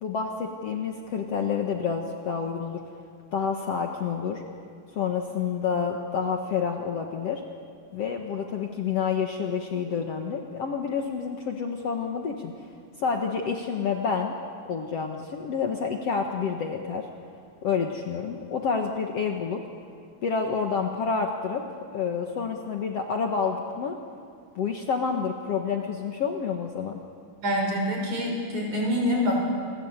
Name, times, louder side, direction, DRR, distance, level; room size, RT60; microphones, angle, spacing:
voice 1, 0.0-2.8 3.3-4.4 4.9-7.4 7.9-12.5 13.0-14.3 14.7-17.1 17.6-19.6 20.2-21.6 21.9-24.0 24.6-27.0, left 6 dB, 55° left, 2 dB, 2.2 m, -28 dB
voice 2, 27.4-29.4, equal, 60° right, 0 dB, 7.3 m, -26 dB
28.0 x 22.5 x 8.2 m, 2.3 s
omnidirectional pair, 3.8 m